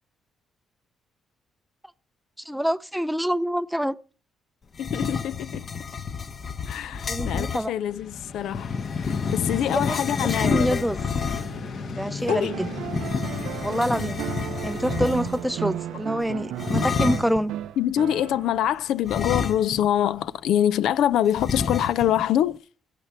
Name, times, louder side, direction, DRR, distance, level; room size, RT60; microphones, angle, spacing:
voice 1, 2.5-4.0 7.0-7.7 9.7-9.8 10.2-11.0 11.9-12.7 13.6-14.2 14.6-17.5, equal, ahead, 0.5 m, -26 dB
sound 1, 4.7-7.7 8.5-11.7 12.9-15.5 16.6-17.4 19.1-20.0 20.3-20.4 21.4-22.2, left 5 dB, 45° left, 0.8 m, -29 dB
voice 2, 4.8-5.6 6.7-8.7 9.0-10.8 12.3-12.6 17.8-22.6, left 11 dB, 80° left, 0.4 m, -25 dB
Vehicle, 7.7-16.7, left 4 dB, 60° left, 1.6 m, -37 dB
sound 2, 12.3-18.7 20.2-20.3, right 12 dB, 85° right, 0.5 m, -34 dB
16.5 x 6.8 x 4.4 m
cardioid pair, 90°, 0 cm